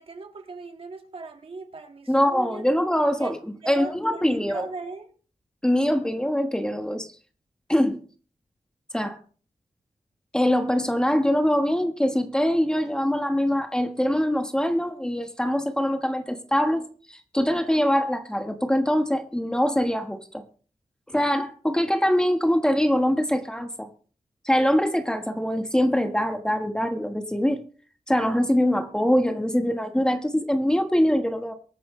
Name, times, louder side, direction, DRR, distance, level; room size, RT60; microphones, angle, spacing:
voice 1, 0.0-2.6 3.2-3.3 3.6-5.1, right 3 dB, 50° right, 1.8 m, -38 dB
voice 2, 2.1-4.7 5.6-7.1 7.7-8.0 8.9-9.2 10.3-20.4 21.1-23.9 24.4-27.6 28.1-31.5, equal, 5° left, 1.3 m, -23 dB
23.5 x 9.2 x 3.2 m
wide cardioid pair, 180°, 12 cm